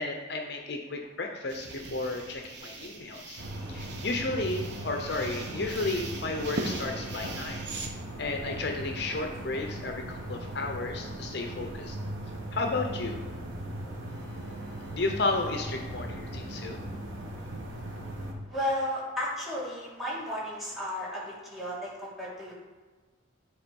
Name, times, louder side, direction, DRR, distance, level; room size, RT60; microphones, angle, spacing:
voice 1, 0.0-3.4 3.7-7.6 8.2-12.0 12.5-13.2 14.1-16.8, left 3 dB, 55° left, 3 dB, 0.7 m, -33 dB
sound 1, 1.5-7.9, right 2 dB, 60° right, 1.1 m, -40 dB
sound 2, 3.4-18.3, right 1 dB, 75° right, 1.3 m, -38 dB
voice 2, 18.5-22.5, left 1 dB, ahead, -8 dB, 2.3 m, -33 dB
10.0 x 3.8 x 5.3 m, 1.4 s
head